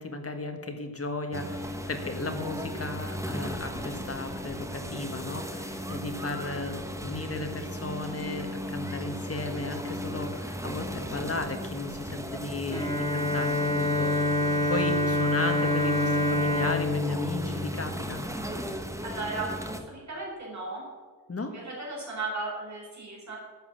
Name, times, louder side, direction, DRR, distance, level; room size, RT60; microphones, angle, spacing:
voice 1, 0.0-14.1 14.6-18.2 21.3-21.5, left 2 dB, 35° left, 5 dB, 1.4 m, -35 dB
sound 1, 1.3-19.8, equal, 5° right, 1.0 m, -36 dB
Bowed string instrument, 12.7-18.4, left 1 dB, 10° left, 1.7 m, -27 dB
voice 2, 19.0-20.8 21.5-23.4, right 3 dB, 45° right, -4 dB, 3.9 m, -36 dB
12.0 x 7.4 x 7.3 m, 1.5 s
wide cardioid pair, 135°, 40 cm